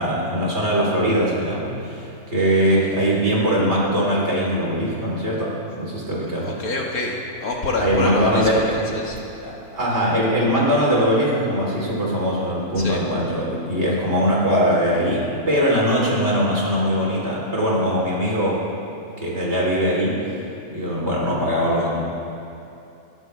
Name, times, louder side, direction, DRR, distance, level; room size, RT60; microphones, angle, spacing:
voice 1, 0.0-6.5 7.8-8.7 9.4-18.6 19.2-20.4 20.7-22.0, equal, 45° right, -5 dB, 4.4 m, -21 dB
voice 2, 6.4-9.2 12.8-13.0, left 2 dB, 75° left, -1 dB, 2.5 m, -26 dB
28.5 x 14.5 x 3.6 m, 2.7 s
omnidirectional pair, 1.5 m